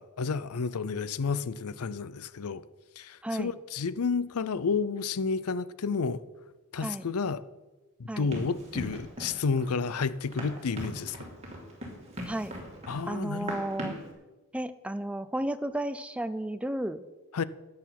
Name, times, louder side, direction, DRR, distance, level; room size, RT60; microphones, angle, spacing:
voice 1, 0.0-2.6 3.0-6.2 6.7-7.4 8.0-11.2 12.9-13.6 17.3-17.4, left 5 dB, 90° left, 0.6 m, -31 dB
Run, 8.3-14.1, equal, 30° right, 3.1 m, -40 dB
voice 2, 13.1-14.0 14.5-17.0, right 1 dB, 5° right, 0.4 m, -33 dB
13.5 x 9.7 x 5.8 m
head